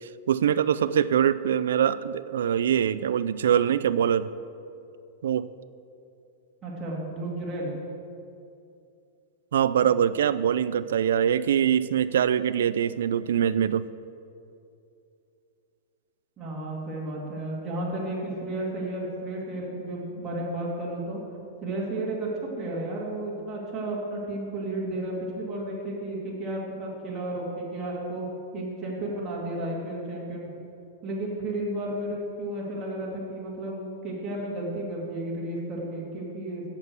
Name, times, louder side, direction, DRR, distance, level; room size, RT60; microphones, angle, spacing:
voice 1, 0.3-4.3 5.2-5.5 9.5-13.9, right 9 dB, 85° right, 15 dB, 0.4 m, -23 dB
voice 2, 6.6-7.7 16.4-21.2 21.6-22.3 22.6-28.3 28.5-30.5 31.0-36.7, right 1 dB, 20° right, -5 dB, 2.4 m, -33 dB
8.2 x 6.9 x 7.9 m, 2.6 s
supercardioid pair, 155°, 0 cm